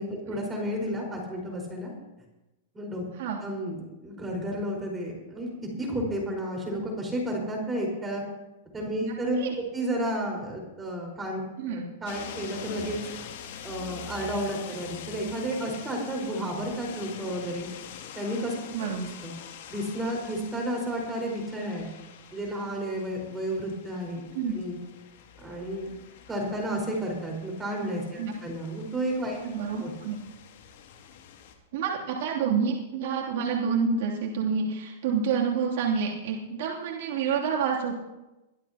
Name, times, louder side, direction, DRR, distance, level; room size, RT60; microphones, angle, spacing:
voice 1, 0.0-1.9 2.7-3.0 3.4-8.2 8.7-11.4 11.7-13.0 13.6-17.7 18.1-18.5 19.2-19.4 19.7-21.9 22.3-24.2 24.5-24.8 25.4-25.9 26.3-29.4 29.8-29.9, right 1 dB, 15° right, -1 dB, 4.7 m, -32 dB
voice 2, 9.0-9.5 11.6-11.8 18.7-19.0 24.3-24.5 28.2-28.3 29.4-30.2 31.7-38.0, right 6 dB, 60° right, -3 dB, 2.9 m, -28 dB
sound 1, 12.1-31.5, left 8 dB, 65° left, 2.4 m, -45 dB
23.5 x 12.5 x 2.9 m, 1.0 s
hypercardioid pair, 140°, 0 cm